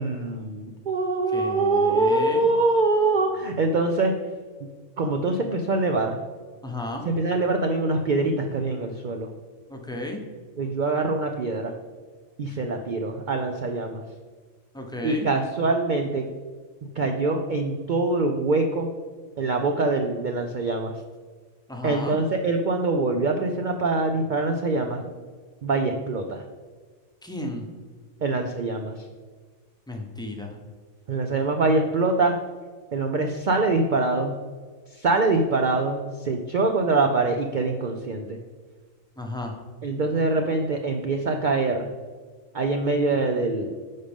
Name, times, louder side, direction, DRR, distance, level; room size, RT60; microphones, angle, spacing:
voice 1, 0.0-4.1 5.0-6.2 7.1-9.3 10.6-11.7 12.4-14.0 15.0-16.3 17.0-18.9 19.4-20.9 21.8-25.0 25.6-26.4 28.2-28.9 31.1-32.3 32.9-34.3 35.0-38.4 39.8-41.9 42.5-43.8, right 3 dB, 60° right, 4 dB, 0.5 m, -24 dB
voice 2, 1.3-2.5 6.6-7.1 9.7-10.2 14.7-15.3 21.7-22.2 27.2-27.7 29.9-30.6 39.2-39.5, left 1 dB, 5° left, 2 dB, 0.7 m, -33 dB
9.6 x 5.1 x 3.5 m, 1.5 s
omnidirectional pair, 1.4 m